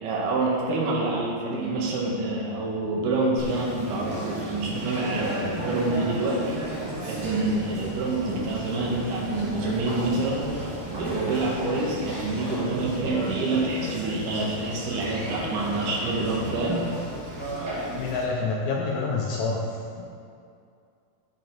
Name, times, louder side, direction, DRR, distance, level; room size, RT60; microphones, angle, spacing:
voice 1, 0.0-6.6 7.1-10.6 10.9-16.9, right 2 dB, 80° right, -3 dB, 2.8 m, -27 dB
Conversation, 3.4-18.2, right 1 dB, 55° right, 3.6 m, -34 dB
voice 2, 18.0-19.6 20.0-20.1, left 4 dB, 70° left, -2 dB, 1.9 m, -27 dB
10.5 x 6.3 x 4.6 m, 2.3 s
omnidirectional pair, 3.7 m